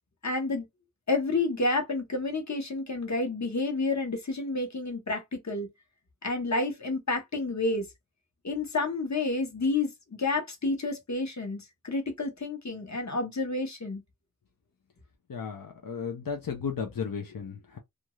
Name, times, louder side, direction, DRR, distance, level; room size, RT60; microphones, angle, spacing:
voice 1, 0.2-0.7 1.1-5.7 6.2-7.9 8.4-9.9 10.2-14.0, left 3 dB, 55° left, 1.0 m, -29 dB
voice 2, 15.3-17.8, left 6 dB, 85° left, 0.6 m, -34 dB
2.5 x 2.3 x 3.0 m
wide cardioid pair, 45°, 33 cm